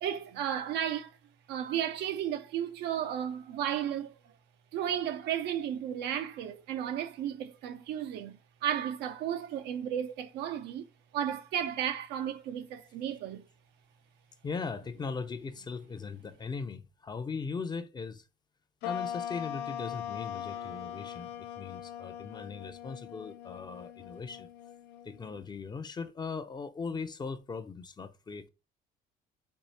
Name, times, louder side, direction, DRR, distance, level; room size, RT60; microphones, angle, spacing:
voice 1, 0.0-1.1 1.5-4.1 4.7-10.8 11.1-13.4, right 10 dB, 80° right, 0.7 m, -34 dB
voice 2, 14.4-18.2 18.8-24.5 25.0-28.5, left 5 dB, 25° left, 0.5 m, -39 dB
sound 1, 18.8-25.5, left 9 dB, 85° left, 0.6 m, -40 dB
4.6 x 2.4 x 4.1 m
cardioid pair, 110°, 17 cm